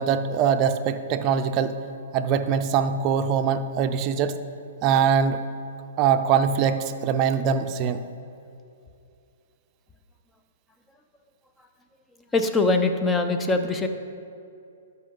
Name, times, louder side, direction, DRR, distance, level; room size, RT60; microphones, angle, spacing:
voice 1, 0.0-1.7 2.1-4.4 4.8-5.4 6.0-8.0, right 7 dB, 35° right, 9 dB, 0.6 m, -22 dB
voice 2, 12.3-13.9, left 3 dB, 15° left, 6 dB, 0.7 m, -22 dB
12.5 x 5.5 x 3.9 m, 2.5 s
hypercardioid pair, 125°, 0 cm